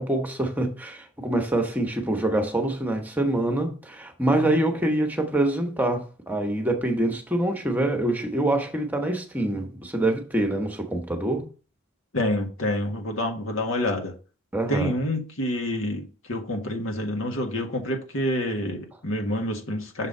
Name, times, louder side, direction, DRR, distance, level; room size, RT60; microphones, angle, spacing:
voice 1, 0.0-11.5 14.5-14.9, right 1 dB, 10° right, 1.0 m, -25 dB
voice 2, 12.1-14.1 14.7-20.1, left 1 dB, 90° left, 1.6 m, -28 dB
6.4 x 3.9 x 5.3 m
head